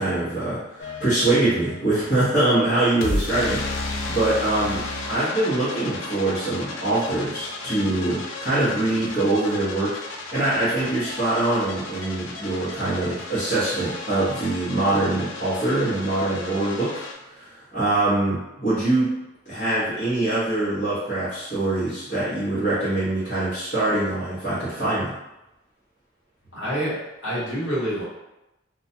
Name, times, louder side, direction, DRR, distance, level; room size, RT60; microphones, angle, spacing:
voice 1, 0.0-4.8 5.1-17.0 17.3-19.1 19.4-25.1, right 2 dB, 40° left, -13 dB, 1.0 m, -24 dB
sound 1, 0.8-17.1, left 2 dB, 85° left, 0.4 m, -34 dB
voice 2, 26.5-28.0, equal, 65° left, -10 dB, 1.2 m, -27 dB
2.3 x 2.2 x 2.7 m, 0.96 s
head